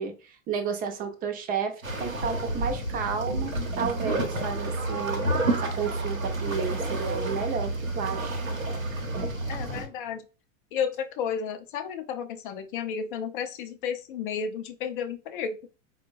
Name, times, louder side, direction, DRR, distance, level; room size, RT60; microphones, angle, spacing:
voice 1, 0.0-8.5, right 6 dB, 20° right, 5 dB, 0.5 m, -32 dB
sound 1, 1.8-9.9, right 2 dB, 90° right, 0.8 m, -30 dB
voice 2, 9.5-10.2 10.7-15.7, left 7 dB, 40° left, 7 dB, 0.5 m, -32 dB
4.2 x 2.1 x 2.5 m, 0.32 s
figure-of-eight pair, 90°, 40 cm